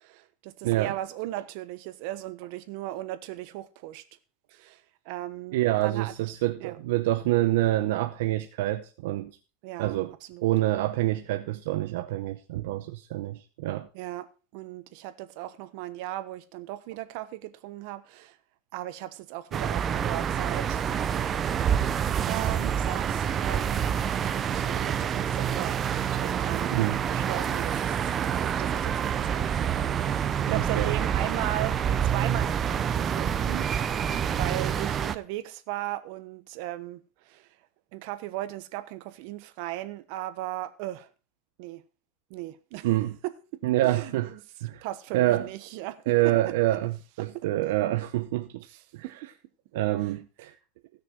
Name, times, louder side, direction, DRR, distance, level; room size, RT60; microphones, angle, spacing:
voice 1, 0.0-4.0 4.5-6.1 6.6-6.8 9.6-10.0 10.3-10.5 13.9-18.4 18.7-20.8 22.3-23.8 24.5-25.8 26.1-26.8 27.1-33.7 34.4-37.5 37.9-41.1 41.6-41.8 42.3-42.9 43.2-44.4 44.8-46.3 47.2-47.5 48.7-49.3 50.0-50.1, right 15 dB, 60° right, 1.1 m, -37 dB
voice 2, 0.6-0.9 5.5-9.3 9.8-10.1 10.4-13.9 26.7-27.0 30.5-30.9 42.8-43.1 43.6-44.3 44.6-44.8 45.1-45.5 46.1-48.7 48.9-49.0 49.7-50.5, right 16 dB, 80° right, 0.8 m, -26 dB
sound 1, 19.5-35.2, right 8 dB, 25° right, 0.6 m, -27 dB
16.5 x 6.5 x 4.7 m
supercardioid pair, 145°, 0 cm